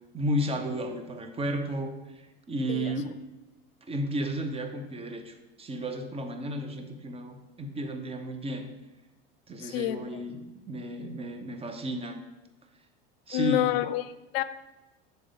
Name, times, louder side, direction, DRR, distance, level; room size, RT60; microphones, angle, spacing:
voice 1, 0.1-3.1 3.8-8.7 9.5-10.4 10.7-12.2 13.3-13.8, right 1 dB, 20° right, 6 dB, 0.7 m, -33 dB
voice 2, 2.7-3.0 9.6-10.2 13.3-14.4, left 15 dB, 80° left, 14 dB, 0.4 m, -29 dB
6.5 x 4.1 x 3.9 m, 1.0 s
supercardioid pair, 110°, 30 cm